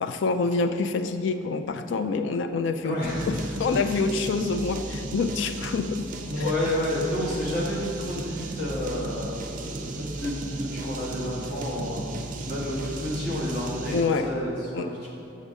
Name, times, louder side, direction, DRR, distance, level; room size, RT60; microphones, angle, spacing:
voice 1, 0.0-3.0 3.3-6.1 6.4-6.5 13.9-14.3 14.7-14.9, left 4 dB, 70° left, 9 dB, 0.3 m, -26 dB
voice 2, 2.8-3.3 6.3-15.1, left 1 dB, 50° left, -5 dB, 1.3 m, -30 dB
sound 1, 3.0-14.2, right 2 dB, 40° right, 0.4 m, -36 dB
6.5 x 5.1 x 3.6 m, 2.7 s
head